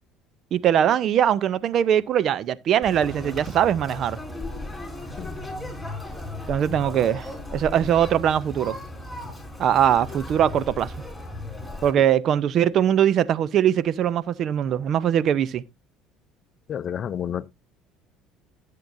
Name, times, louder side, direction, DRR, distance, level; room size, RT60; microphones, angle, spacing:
voice 1, 0.5-4.2 6.5-8.8 9.6-10.9 11.8-15.6, right 10 dB, 55° right, 0.6 m, -21 dB
Conversation, 2.8-11.9, left 2 dB, 5° left, 4.0 m, -36 dB
voice 2, 16.7-17.5, left 9 dB, 45° left, 0.5 m, -30 dB
13.5 x 7.6 x 2.6 m
supercardioid pair, 90°, 0 cm